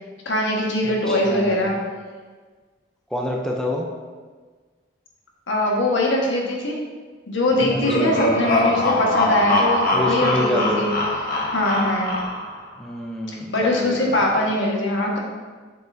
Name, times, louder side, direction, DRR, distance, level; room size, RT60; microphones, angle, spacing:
voice 1, 0.2-1.8 5.5-6.8 7.3-10.9 11.5-12.1 13.5-15.2, left 1 dB, 80° left, -2 dB, 1.6 m, -22 dB
voice 2, 0.8-1.8 3.1-3.9 7.7-8.2 9.9-11.0 12.8-14.1, left 1 dB, 5° left, -2 dB, 0.6 m, -27 dB
sound 1, 7.5-12.6, left 1 dB, 50° left, 1.3 m, -22 dB
7.8 x 7.6 x 2.8 m, 1.4 s
head